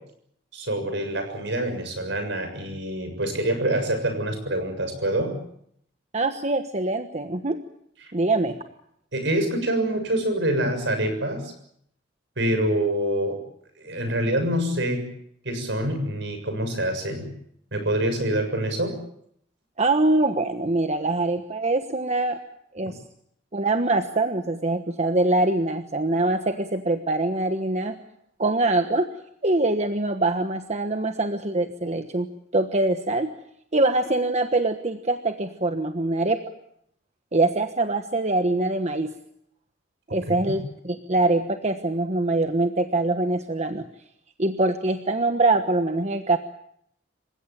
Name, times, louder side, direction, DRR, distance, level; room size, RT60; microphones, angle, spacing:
voice 1, 0.5-5.4 8.0-8.1 9.1-11.5 12.4-13.4 13.8-15.0 15.4-17.3 17.7-19.0 40.3-40.6, right 1 dB, 70° right, 7 dB, 7.0 m, -26 dB
voice 2, 6.1-7.6 8.1-8.6 19.8-22.4 22.7-23.0 23.5-28.0 28.4-29.1 29.4-32.3 32.5-33.3 33.7-36.4 37.3-39.1 40.1-43.8 44.4-46.4, right 2 dB, 35° right, 7 dB, 1.3 m, -23 dB
27.5 x 16.5 x 9.2 m, 0.72 s
head